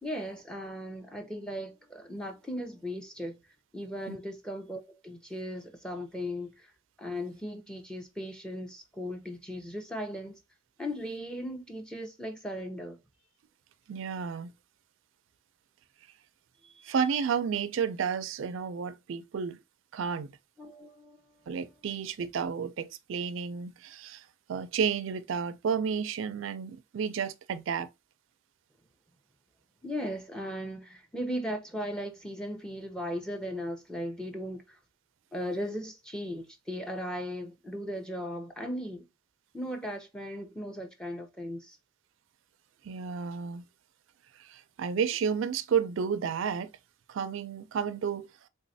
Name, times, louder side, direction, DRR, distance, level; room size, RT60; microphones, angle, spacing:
voice 1, 0.0-3.4 3.7-6.7 7.0-10.4 10.8-13.0 16.6-16.9 20.6-21.5 29.8-34.8 35.3-39.1 39.5-41.8, equal, 5° left, 0.6 m, -37 dB
voice 2, 13.9-14.5 16.8-19.6 19.9-20.3 21.5-27.9 42.8-43.6 44.4-46.7 47.1-48.3, right 6 dB, 70° right, 0.4 m, -31 dB
3.4 x 3.1 x 2.6 m
head